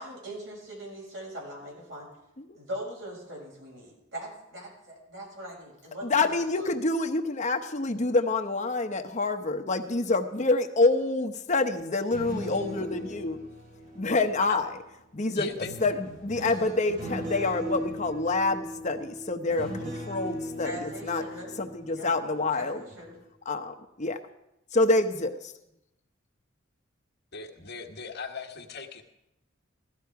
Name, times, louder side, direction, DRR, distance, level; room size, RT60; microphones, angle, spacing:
voice 1, 0.0-2.1 2.5-6.4 20.6-21.5 21.9-22.1 22.5-23.1, equal, 65° right, -2 dB, 6.5 m, -41 dB
voice 2, 6.0-13.4 14.0-14.7 15.1-15.5 15.8-21.2 21.6-22.8 23.5-24.2 24.7-25.5, left 3 dB, 40° left, 6 dB, 0.9 m, -27 dB
sound 1, 11.9-14.8 15.6-22.5 22.9-23.2, equal, 50° right, 3.1 m, -38 dB
voice 3, 15.3-15.7 27.3-29.0, left 5 dB, 55° left, 3 dB, 1.5 m, -39 dB
16.5 x 13.0 x 4.7 m, 0.87 s
head